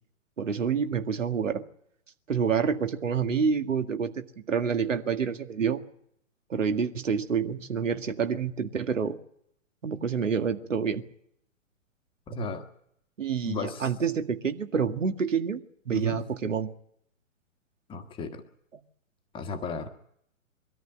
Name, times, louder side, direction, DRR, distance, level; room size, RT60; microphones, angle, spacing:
voice 1, 0.4-1.6 2.3-5.8 6.5-9.2 9.8-11.0 13.2-15.6 15.9-16.7, right 6 dB, 70° right, 7 dB, 2.0 m, -28 dB
voice 2, 12.3-12.7 13.4-13.9 15.9-16.2 17.9-18.4 19.3-19.9, left 2 dB, 15° left, 6 dB, 1.4 m, -34 dB
23.0 x 14.0 x 9.8 m, 0.71 s
figure-of-eight pair, 125°, 40 cm